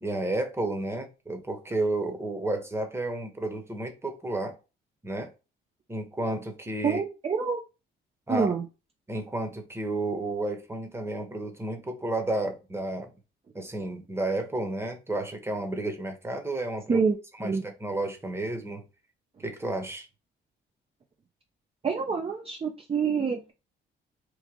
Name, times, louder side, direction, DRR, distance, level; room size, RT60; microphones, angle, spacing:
voice 1, 0.0-4.6 5.0-5.3 5.9-7.0 8.3-8.5 9.1-13.1 13.5-17.0 17.4-18.8 19.4-20.1, right 2 dB, 10° right, 1.0 m, -31 dB
voice 2, 6.8-7.6 8.3-8.6 16.9-17.2 17.4-17.6 21.8-23.5, right 5 dB, 30° right, 0.6 m, -26 dB
3.1 x 2.5 x 3.7 m
cardioid pair, 90°, 20 cm